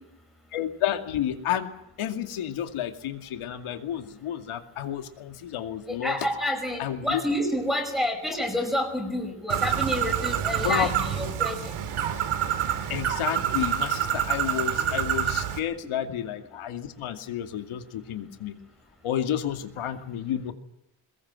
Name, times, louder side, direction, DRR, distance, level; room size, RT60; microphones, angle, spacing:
voice 1, 0.5-1.7 2.0-6.2 6.8-7.2 10.6-10.9 12.9-18.6 19.0-20.5, left 10 dB, 85° left, 7 dB, 2.5 m, -31 dB
voice 2, 5.9-11.7, left 1 dB, ahead, 2 dB, 5.0 m, -29 dB
Bird, 9.5-15.6, right 9 dB, 90° right, 3.1 m, -27 dB
22.0 x 21.5 x 7.9 m, 0.87 s
cardioid pair, 140°, 49 cm